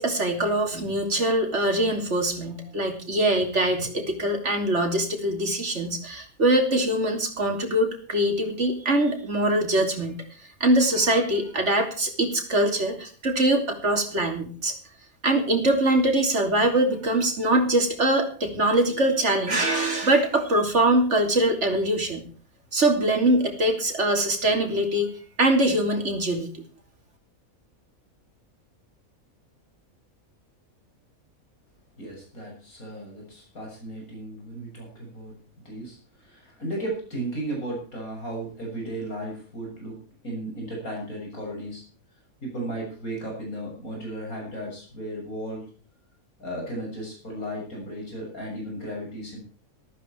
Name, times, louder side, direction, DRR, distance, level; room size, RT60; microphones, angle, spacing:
voice 1, 0.0-10.1 10.6-14.7 15.2-22.2 22.7-25.1 25.4-26.5, right 1 dB, 50° right, 3 dB, 3.5 m, -23 dB
voice 2, 32.0-35.4 35.6-41.8 42.4-45.7 46.4-49.4, right 1 dB, 80° left, -1 dB, 7.6 m, -35 dB
14.0 x 14.0 x 4.7 m, 0.42 s
omnidirectional pair, 1.5 m